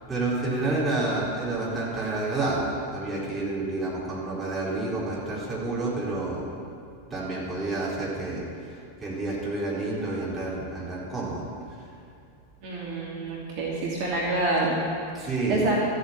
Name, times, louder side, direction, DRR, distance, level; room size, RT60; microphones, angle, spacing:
voice 1, 0.1-6.5 7.1-11.5 15.1-15.7, right 2 dB, 15° right, -7 dB, 4.3 m, -29 dB
voice 2, 12.6-14.8 15.5-15.7, right 2 dB, 45° right, -5 dB, 2.9 m, -27 dB
13.5 x 8.7 x 8.9 m, 2.4 s
figure-of-eight pair, 90°, 0 cm